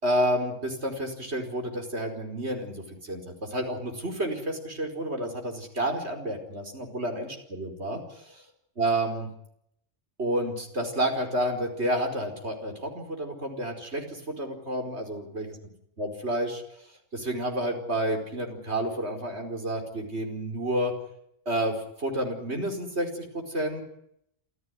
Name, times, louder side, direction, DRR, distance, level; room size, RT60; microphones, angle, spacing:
voice 1, 0.0-8.4 8.8-9.3 10.2-15.6 16.0-16.6 17.1-20.9 21.5-23.8, right 1 dB, 60° right, 4 dB, 5.3 m, -30 dB
28.0 x 15.0 x 9.6 m, 0.75 s
omnidirectional pair, 1.3 m